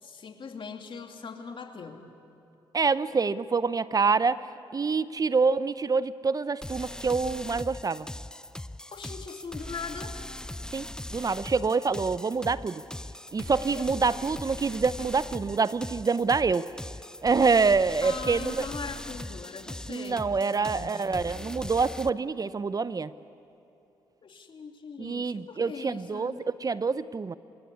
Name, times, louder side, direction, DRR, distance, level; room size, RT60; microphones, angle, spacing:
voice 1, 0.0-2.1 8.9-10.2 13.8-13.9 18.0-21.4 24.2-26.4, left 5 dB, 55° left, 4 dB, 2.6 m, -41 dB
voice 2, 2.7-4.4 4.7-8.1 10.7-12.8 13.3-16.7 17.2-18.7 19.9-23.1 25.0-27.3, right 4 dB, 35° right, 15 dB, 0.7 m, -26 dB
sound 1, 6.6-22.1, left 1 dB, 5° left, 0.6 m, -40 dB
28.5 x 17.0 x 9.9 m, 2.8 s
supercardioid pair, 55°, 11 cm